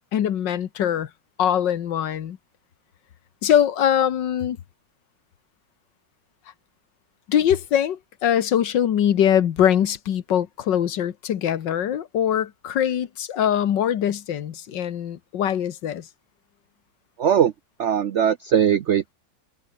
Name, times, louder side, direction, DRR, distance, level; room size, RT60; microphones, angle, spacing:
voice 1, 0.1-1.1 1.4-2.4 3.4-4.6 7.3-16.0, left 9 dB, 70° left, 1.8 m, -22 dB
voice 2, 17.2-17.5 17.8-19.1, right 9 dB, 90° right, 0.6 m, -20 dB
omnidirectional pair, 2.1 m